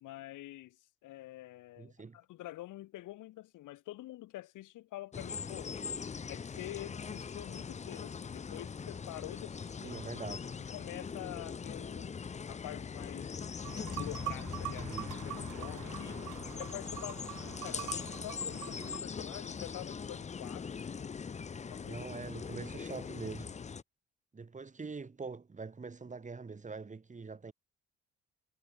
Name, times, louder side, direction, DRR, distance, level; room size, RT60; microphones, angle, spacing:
voice 1, 0.0-5.7 6.3-10.0 10.7-12.2 12.5-16.2 16.5-21.1 21.7-22.0 23.0-23.1, left 16 dB, 85° left, 1.4 m, -47 dB
voice 2, 1.8-2.2 9.8-10.5 14.8-15.2 21.8-23.6 24.3-27.5, right 4 dB, 25° right, 1.9 m, -44 dB
sound 1, 5.1-23.8, left 6 dB, 25° left, 0.5 m, -41 dB
sound 2, 13.6-19.0, right 18 dB, 80° right, 0.6 m, -44 dB
cardioid pair, 90°, 30 cm